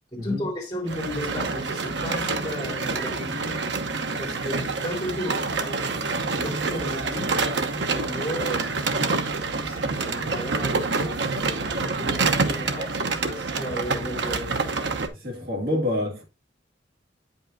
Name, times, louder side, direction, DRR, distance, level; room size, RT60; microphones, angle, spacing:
voice 1, 0.1-3.6 4.2-6.0 6.3-7.4 7.9-8.7 9.5-11.2 11.6-14.6, left 1 dB, 20° left, 3.7 m, -34 dB
sound 1, 0.9-15.1, right 3 dB, 70° right, 0.9 m, -27 dB
voice 2, 15.1-16.2, left 1 dB, 50° right, 2.1 m, -27 dB
8.9 x 5.5 x 2.6 m
head